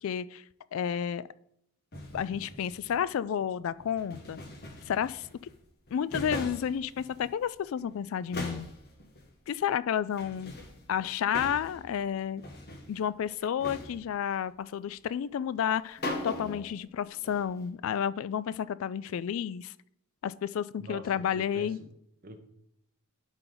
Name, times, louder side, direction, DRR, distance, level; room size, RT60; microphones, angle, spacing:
voice 1, 0.0-0.4 0.7-1.2 2.1-4.4 4.9-5.3 5.9-8.7 9.5-10.6 10.9-12.4 12.9-19.7 20.2-21.8, left 8 dB, 65° left, 18 dB, 0.3 m, -31 dB
sound 1, 1.9-3.0 3.8-5.6 5.9-7.5 7.8-7.9 8.2-9.3 10.1-11.9 12.2-13.0 13.6-14.2 15.6-15.7 16.0-16.7 17.0-17.6, left 1 dB, 45° left, 1.4 m, -41 dB
voice 2, 20.8-21.9 22.2-22.4, right 2 dB, 40° right, 5 dB, 1.0 m, -45 dB
11.5 x 4.5 x 3.9 m, 0.76 s
head